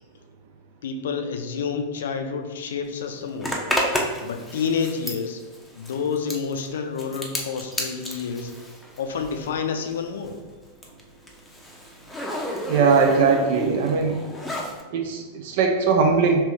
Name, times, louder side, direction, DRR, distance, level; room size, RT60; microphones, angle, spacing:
voice 1, 0.8-3.6 4.2-5.4 5.7-8.5 9.0-10.4, left 6 dB, 60° left, 6 dB, 0.4 m, -29 dB
Zipper (clothing), 3.4-9.6 9.9-14.8, left 1 dB, 5° left, 0.7 m, -31 dB
voice 2, 12.7-14.2 14.9-16.4, right 5 dB, 50° right, 3 dB, 0.5 m, -20 dB
3.3 x 3.0 x 4.3 m, 1.2 s
figure-of-eight pair, 90°, 0 cm